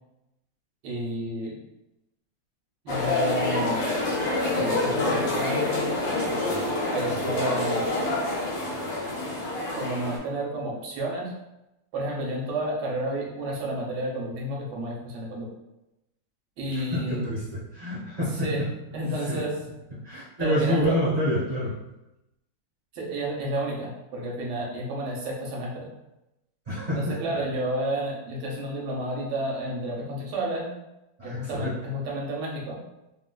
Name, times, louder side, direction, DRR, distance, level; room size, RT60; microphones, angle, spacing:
voice 1, 0.8-1.6 2.8-4.0 4.5-5.6 6.9-8.0 9.7-11.3 11.9-15.5 16.6-17.3 18.4-18.6 18.9-19.5 20.4-21.0 22.9-25.9 26.9-30.7 31.2-32.8, right 1 dB, 70° right, -3 dB, 1.3 m, -31 dB
sound 1, 2.9-10.2, left 2 dB, 85° left, 1.5 m, -27 dB
voice 2, 16.7-18.7 19.3-19.4 20.0-21.7 26.7-27.2 31.2-31.7, equal, 40° right, -9 dB, 1.1 m, -27 dB
3.7 x 2.4 x 2.2 m, 0.92 s
omnidirectional pair, 2.1 m